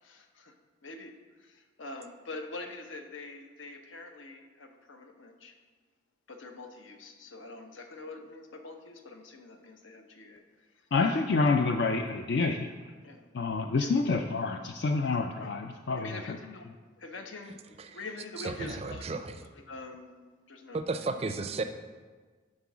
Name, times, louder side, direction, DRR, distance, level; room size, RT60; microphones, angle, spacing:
voice 1, 0.0-0.5 0.8-1.1 1.4-5.5 6.3-10.4 13.0-13.3 13.8-13.9 15.4-15.5 15.9-16.7 17.0-19.1 19.7-20.8, left 3 dB, 75° left, 5 dB, 0.9 m, -45 dB
voice 2, 10.9-12.7 13.3-16.4, left 3 dB, 55° left, 5 dB, 0.4 m, -28 dB
voice 3, 18.4-19.4 20.7-21.6, right 3 dB, 30° right, 8 dB, 0.4 m, -34 dB
11.0 x 3.7 x 6.1 m, 1.4 s
head